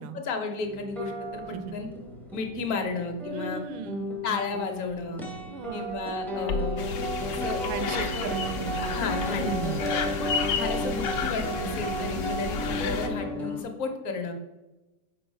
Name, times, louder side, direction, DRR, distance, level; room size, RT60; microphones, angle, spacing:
voice 1, 0.1-1.9 2.3-3.6 4.2-5.2 5.7-6.8 7.3-8.3 8.9-9.5 9.9-10.2 10.6-14.3, left 4 dB, 50° left, 4 dB, 1.1 m, -33 dB
sound 1, 0.6-13.6, left 1 dB, 5° left, 0.3 m, -33 dB
voice 2, 1.4-1.7 3.3-4.2 5.5-6.0 7.6-9.9, right 7 dB, 75° right, 12 dB, 1.3 m, -36 dB
sound 2, 6.5-11.3, equal, 85° left, 1.5 m, -40 dB
sound 3, 6.8-13.1, left 5 dB, 70° left, 1.2 m, -32 dB
6.2 x 4.8 x 4.7 m, 1.0 s
omnidirectional pair, 2.2 m